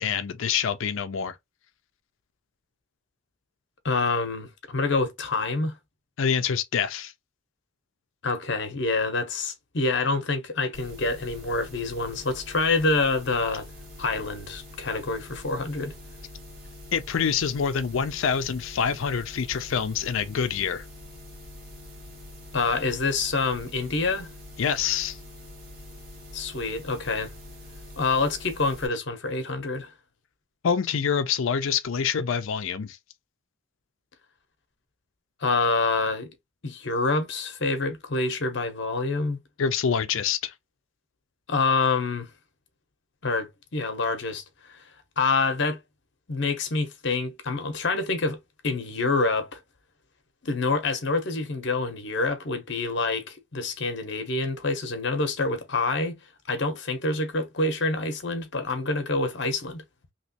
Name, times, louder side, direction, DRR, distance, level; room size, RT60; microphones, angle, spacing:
voice 1, 0.0-1.3 6.2-7.1 16.9-20.8 24.6-25.2 30.6-33.0 39.6-40.5, left 7 dB, 70° left, 0.4 m, -26 dB
voice 2, 3.8-5.8 8.2-13.7 14.0-15.9 22.5-24.3 26.3-27.3 28.0-29.9 35.4-36.3 36.6-39.4 41.5-42.3 43.2-44.4 44.7-44.8 45.2-45.8 46.3-49.6 50.4-56.2 56.5-59.8, left 3 dB, 55° left, 0.8 m, -27 dB
sound 1, 10.7-28.9, left 1 dB, 45° right, 1.5 m, -44 dB
3.0 x 2.9 x 2.8 m
head